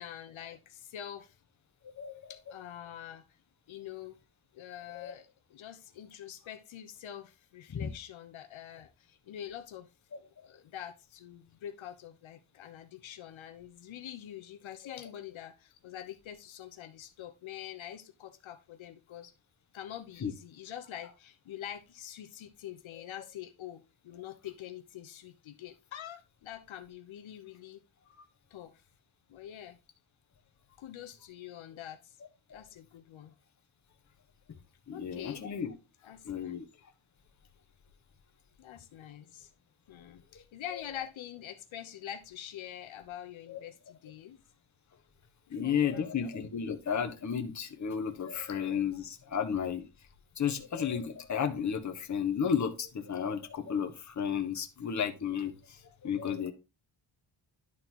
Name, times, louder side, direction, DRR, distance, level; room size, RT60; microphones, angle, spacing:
voice 1, 0.0-1.4 2.3-3.2 3.7-4.2 4.5-9.9 10.2-19.3 19.7-27.8 28.5-28.8 29.3-29.8 30.8-32.2 32.5-33.3 34.9-35.5 36.0-36.6 38.6-39.5 39.9-44.4 45.5-46.3, left 11 dB, 75° left, 1.1 m, -45 dB
voice 2, 1.8-2.3 4.9-5.2 7.7-7.9 10.1-10.5 14.8-15.0 20.2-20.3 23.1-23.2 32.5-32.6 34.9-35.7 36.2-36.6 40.3-40.4 40.7-40.8 43.5-43.6 45.5-49.9 50.4-56.5, left 7 dB, 35° left, 1.3 m, -33 dB
11.5 x 3.9 x 4.5 m
cardioid pair, 135°, 48 cm